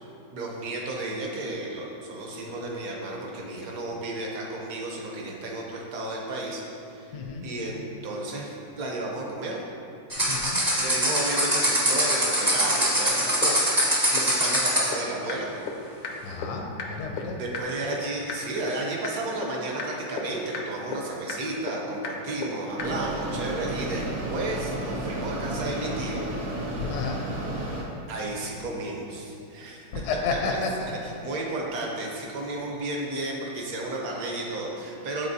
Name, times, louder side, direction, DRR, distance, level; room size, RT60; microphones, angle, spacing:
voice 1, 0.3-7.1 7.4-9.6 10.8-15.5 17.4-26.2 28.1-30.0 30.3-30.6 30.9-35.3, right 2 dB, 60° right, -1 dB, 1.1 m, -33 dB
voice 2, 7.1-7.4 10.3-10.6 16.2-17.4 26.8-27.2 29.9-30.9, left 4 dB, 75° left, 1 dB, 1.0 m, -31 dB
sound 1, 10.1-14.9, equal, 25° right, 0.4 m, -23 dB
sound 2, 13.0-13.1 13.4-13.5 13.8-13.9 14.2-14.3 14.5-14.6 14.9-15.0 15.3-15.4 15.7-15.8 16.0-16.1 16.4-16.5 16.8-16.9 17.2-17.3 17.5-17.6 17.9-18.0 18.3-18.4 18.7-18.8 19.0-19.1 19.4-19.5 19.8-19.9 20.2-20.3 20.5-20.6 20.9-21.0 21.3-21.4 21.7-21.8 22.0-22.1 22.4-22.5 22.8-22.9, left 7 dB, 90° left, 1.4 m, -32 dB
Mechanisms, 22.8-27.8, right 1 dB, 80° right, 1.7 m, -32 dB
8.7 x 4.0 x 2.7 m, 2.7 s
omnidirectional pair, 2.1 m